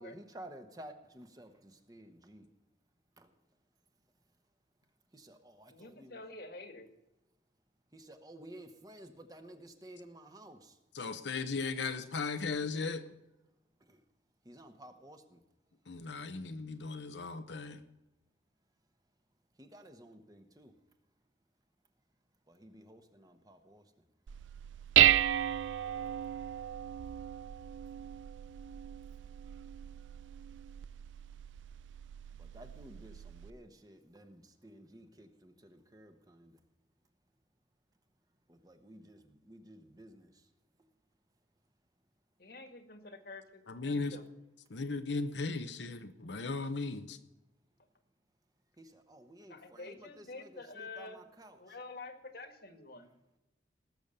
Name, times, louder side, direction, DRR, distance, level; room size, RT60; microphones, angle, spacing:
voice 1, 0.0-2.5 3.2-3.4 5.1-6.2 7.9-10.8 13.8-14.0 14.4-15.4 19.6-20.8 22.5-23.9 32.3-36.6 38.5-40.5 48.8-51.7, right 1 dB, 20° right, 7 dB, 1.0 m, -54 dB
voice 2, 5.7-6.9 42.4-44.2 49.5-51.2 51.6-53.1, left 3 dB, 55° left, 7 dB, 1.6 m, -48 dB
voice 3, 10.9-13.1 15.9-17.8 43.7-44.2 44.7-47.2, left 4 dB, 70° left, 9 dB, 0.8 m, -37 dB
Dishes pots and pans, 24.3-33.5, right 12 dB, 85° right, 0.4 m, -33 dB
19.0 x 7.1 x 6.7 m, 0.97 s
head